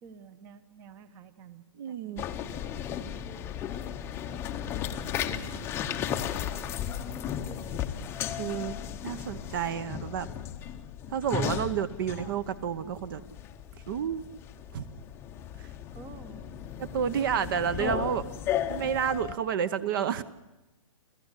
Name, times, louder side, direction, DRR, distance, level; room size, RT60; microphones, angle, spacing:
voice 1, 0.0-3.6 4.3-6.4 7.1-7.8 15.9-16.9 17.2-17.6, right 6 dB, 20° right, 12 dB, 0.9 m, -51 dB
voice 2, 1.8-2.3 8.4-8.8 9.0-10.3 11.1-13.2 13.8-14.2 14.7-14.9 15.6-15.7 16.8-18.3 18.7-20.2, right 8 dB, 40° right, 15 dB, 1.0 m, -30 dB
sound 1, 2.2-19.4, left 9 dB, 15° left, 0.8 m, -35 dB
29.0 x 14.5 x 8.2 m, 1.0 s
hypercardioid pair, 155°, 17 cm